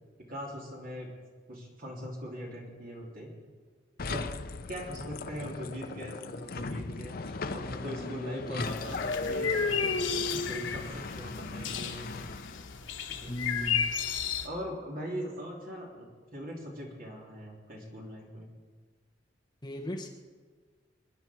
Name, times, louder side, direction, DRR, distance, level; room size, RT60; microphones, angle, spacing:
voice 1, 0.3-1.1 1.5-3.3 4.1-4.3 4.7-12.1 13.1-13.5 14.4-16.1 16.3-18.5, equal, 50° right, -2 dB, 3.5 m, -41 dB
sound 1, 4.0-12.7, left 3 dB, 50° left, 0.7 m, -36 dB
voice 2, 7.8-8.9 13.3-13.9 19.6-20.1, equal, 25° left, 2 dB, 1.1 m, -37 dB
sound 2, 8.6-14.5, left 7 dB, 90° left, 1.1 m, -34 dB
26.5 x 10.0 x 4.6 m, 1.5 s
head